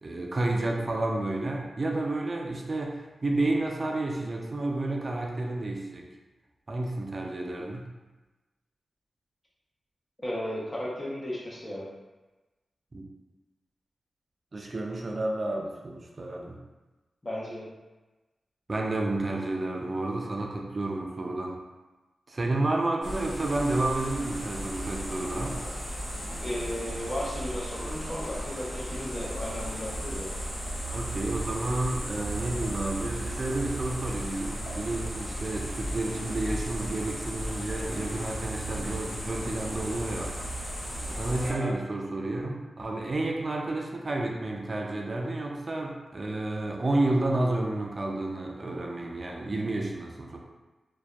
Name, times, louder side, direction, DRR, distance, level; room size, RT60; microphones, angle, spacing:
voice 1, 0.0-6.1 6.7-7.9 12.9-13.0 14.5-16.6 18.7-21.6 22.3-25.6 30.9-40.3 41.2-50.4, right 2 dB, 45° right, 1 dB, 0.4 m, -30 dB
voice 2, 10.2-11.8 17.2-17.6 26.4-30.3 41.4-41.7, left 1 dB, 25° left, -6 dB, 0.8 m, -35 dB
sound 1, 23.0-41.5, right 1 dB, 65° left, 1.3 m, -35 dB
2.5 x 2.2 x 2.2 m, 1.2 s
cardioid pair, 60°, 0 cm